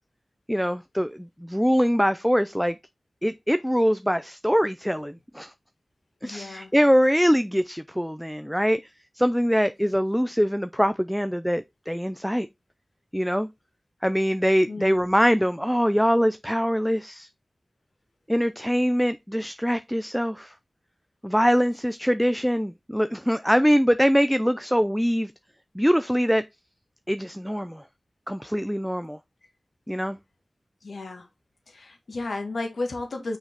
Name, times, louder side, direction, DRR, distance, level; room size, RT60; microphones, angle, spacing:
voice 1, 0.5-2.7 3.2-5.5 6.2-8.8 9.2-12.5 13.1-13.5 14.0-17.3 18.3-20.5 21.2-25.3 25.8-26.4 27.1-27.8 28.3-29.2 29.9-30.2, equal, ahead, 0.4 m, -23 dB
voice 2, 6.2-6.7 14.7-15.0 30.8-31.3 31.7-33.4, left 2 dB, 90° left, 1.8 m, -33 dB
6.2 x 5.2 x 3.7 m
wide cardioid pair, 60°, 0 cm